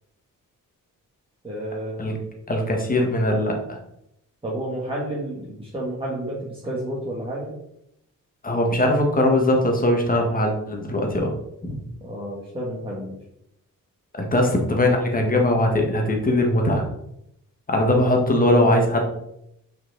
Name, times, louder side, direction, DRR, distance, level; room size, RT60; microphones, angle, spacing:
voice 1, 1.4-2.1 4.4-7.5 12.0-13.2, right 1 dB, 15° right, -5 dB, 1.4 m, -30 dB
voice 2, 2.5-3.6 8.4-11.3 11.6-11.8 14.2-16.8 17.7-19.0, left 1 dB, 25° left, 2 dB, 1.4 m, -20 dB
5.8 x 4.5 x 3.9 m, 0.78 s
cardioid pair, 110°, 33 cm